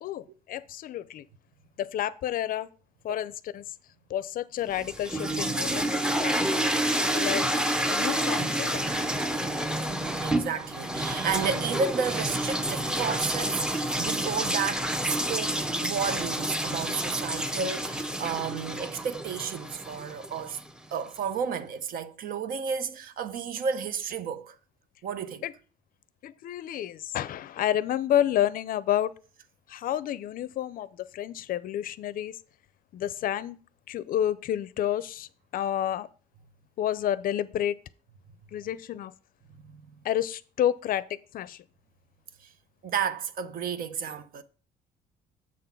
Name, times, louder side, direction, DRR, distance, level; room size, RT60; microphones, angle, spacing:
voice 1, 0.0-1.3 1.8-2.7 3.0-3.8 4.1-7.6 7.9-8.8 25.4-25.5 26.2-29.1 29.7-32.4 32.9-33.6 33.9-36.1 36.8-37.8 38.5-39.1 40.0-41.6, left 11 dB, 55° left, 0.5 m, -30 dB
sound 1, 4.7-20.7, right 1 dB, 5° right, 0.6 m, -29 dB
voice 2, 10.2-20.6 20.9-24.6 25.0-25.4 39.6-39.8 42.4-42.5 42.8-44.4, right 6 dB, 60° right, 0.7 m, -32 dB
7.5 x 3.8 x 5.7 m
cardioid pair, 110°, 17 cm